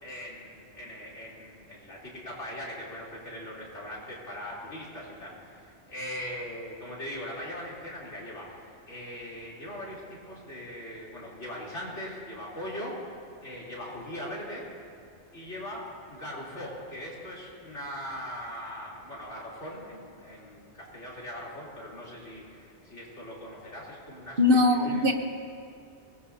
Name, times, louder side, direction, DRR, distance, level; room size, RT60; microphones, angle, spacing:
voice 1, 0.0-13.2 13.4-14.7 15.3-24.4 24.7-25.1, equal, 90° left, -6 dB, 4.0 m, -40 dB
voice 2, 24.4-25.1, left 2 dB, 50° right, 5 dB, 1.2 m, -21 dB
24.0 x 19.0 x 2.8 m, 2.4 s
omnidirectional pair, 1.2 m